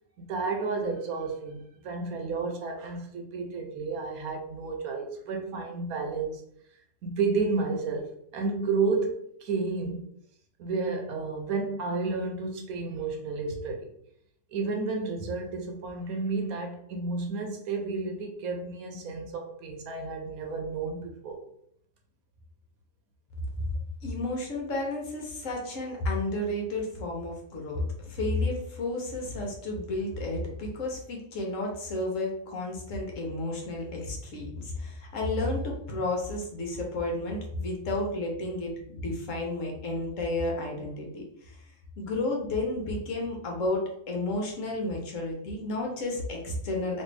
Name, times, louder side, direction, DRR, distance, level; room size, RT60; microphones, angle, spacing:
voice 1, 0.3-6.4 7.0-10.0 10.6-13.9 14.5-21.4, right 4 dB, 80° right, 1.1 m, -31 dB
voice 2, 24.0-41.6 42.0-47.0, left 2 dB, 65° left, 1.2 m, -32 dB
3.2 x 2.6 x 3.2 m
omnidirectional pair, 1.5 m